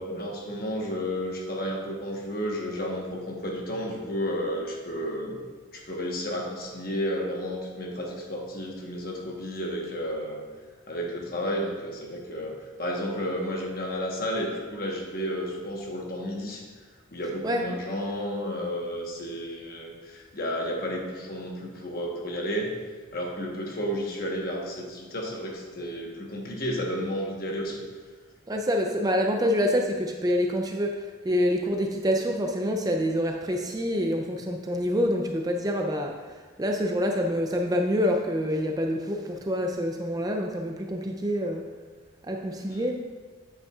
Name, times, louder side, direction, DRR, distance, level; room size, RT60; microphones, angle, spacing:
voice 1, 0.0-5.4 5.7-10.4 10.9-12.5 12.8-16.6 17.1-22.7 23.1-27.8 42.7-42.9, equal, 45° left, 0 dB, 1.1 m, -32 dB
voice 2, 28.5-36.2 36.6-41.7 42.2-42.9, equal, 20° right, 3 dB, 0.4 m, -26 dB
8.2 x 8.0 x 2.4 m, 1.4 s
head